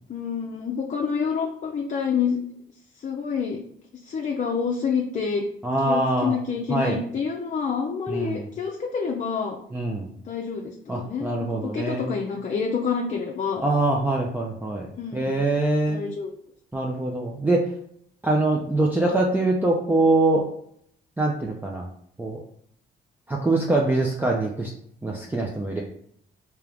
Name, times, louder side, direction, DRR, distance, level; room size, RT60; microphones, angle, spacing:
voice 1, 0.1-2.4 3.0-3.6 4.0-5.4 5.9-9.6 10.3-13.6 15.0-15.4 15.9-16.3, left 6 dB, 40° left, 0 dB, 0.6 m, -28 dB
voice 2, 5.6-6.4 6.7-7.0 8.1-8.5 9.7-10.1 10.9-12.1 13.6-14.9 15.1-16.0 16.7-17.7 18.2-20.5 21.2-21.9 22.2-22.4 23.3-24.7 25.0-25.8, right 2 dB, 10° right, -2 dB, 0.5 m, -23 dB
3.4 x 2.9 x 3.4 m, 0.67 s
cardioid pair, 90°, 20 cm